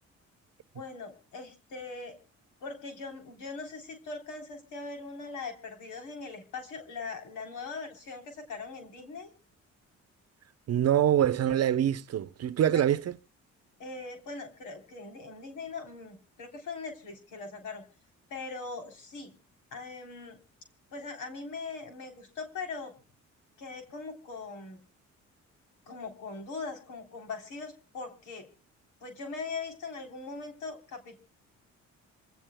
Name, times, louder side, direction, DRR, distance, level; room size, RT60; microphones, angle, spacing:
voice 1, 0.7-2.2 2.6-9.3 13.8-17.8 18.3-19.4 19.7-20.4 20.9-22.9 23.6-24.8 25.9-28.5 29.0-31.2, left 4 dB, 85° left, 3.5 m, -41 dB
voice 2, 10.7-13.2, right 10 dB, 55° right, 0.8 m, -25 dB
26.5 x 16.5 x 2.2 m
cardioid pair, 90°, 30 cm